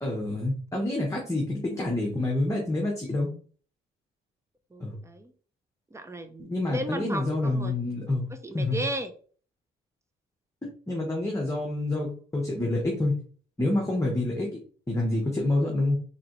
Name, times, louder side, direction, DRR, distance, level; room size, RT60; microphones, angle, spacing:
voice 1, 0.0-3.3 4.8-5.0 6.4-8.3 8.5-8.8 10.9-13.2 13.6-14.5 14.9-16.0, left 2 dB, 15° left, -1 dB, 0.9 m, -27 dB
voice 2, 4.7-5.3 5.9-7.8 8.4-9.1, right 1 dB, 15° right, 8 dB, 0.5 m, -35 dB
3.9 x 2.8 x 3.0 m, 0.43 s
cardioid pair, 90°, 20 cm